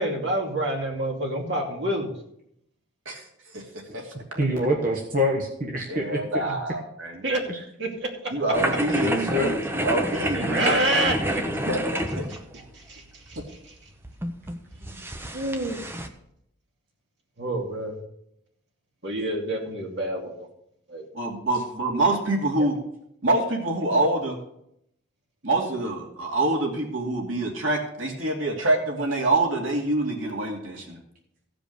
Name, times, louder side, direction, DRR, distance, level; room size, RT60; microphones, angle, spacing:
voice 1, 0.0-2.1 7.2-7.4 7.8-8.1 10.3-11.4 12.3-12.4 12.7-13.4 14.8-15.0 15.3-15.8 17.4-18.0 19.0-20.5 20.9-21.0, right 1 dB, 60° right, 0 dB, 2.5 m, -27 dB
voice 2, 4.4-6.2 7.5-7.6 9.0-9.6, left 1 dB, 40° right, -1 dB, 1.3 m, -25 dB
voice 3, 5.9-7.2 8.3-10.8 11.7-11.8 12.2-12.3 19.2-19.3 21.1-22.8 23.2-24.4 25.4-31.0, right 2 dB, 85° right, 0 dB, 2.5 m, -26 dB
sound 1, 8.5-16.1, right 1 dB, 10° right, 0.7 m, -29 dB
15.5 x 5.2 x 6.6 m, 0.75 s
head